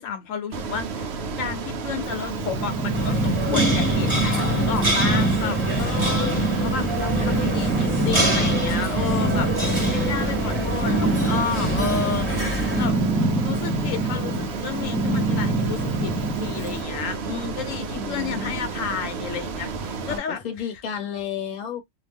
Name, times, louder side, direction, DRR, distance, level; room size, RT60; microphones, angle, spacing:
voice 1, 0.0-13.0 13.4-20.4, left 7 dB, 80° left, 1.0 m, -32 dB
Ocean, 0.5-20.2, right 4 dB, 60° right, 0.8 m, -32 dB
Purr, 2.0-16.8, right 2 dB, 5° right, 1.3 m, -25 dB
sound 1, 2.9-12.9, right 1 dB, 25° right, 1.2 m, -26 dB
voice 2, 6.7-7.5 17.9-18.5 20.1-21.8, left 7 dB, 40° left, 0.8 m, -33 dB
2.8 x 2.3 x 3.4 m
omnidirectional pair, 1.4 m